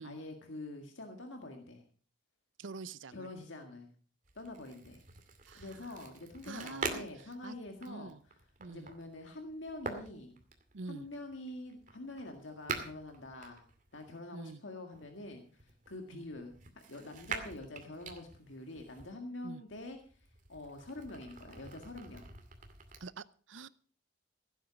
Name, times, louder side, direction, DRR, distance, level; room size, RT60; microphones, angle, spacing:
voice 1, 0.0-1.8 3.1-3.9 4.4-5.0 5.5-8.1 8.7-10.4 10.9-13.7 13.9-22.3, left 2 dB, 85° left, 4 dB, 1.9 m, -46 dB
voice 2, 2.6-3.3 5.5-5.9 6.4-7.1 7.4-7.6 7.9-8.2 8.6-8.9 10.7-11.1 14.3-14.6 16.1-16.2 19.4-19.6 23.0-23.7, right 4 dB, 90° right, 17 dB, 0.7 m, -46 dB
sound 1, 4.2-14.2 14.9-19.1 19.7-23.0, right 4 dB, 40° right, 2.4 m, -46 dB
16.0 x 9.2 x 5.8 m, 0.43 s
head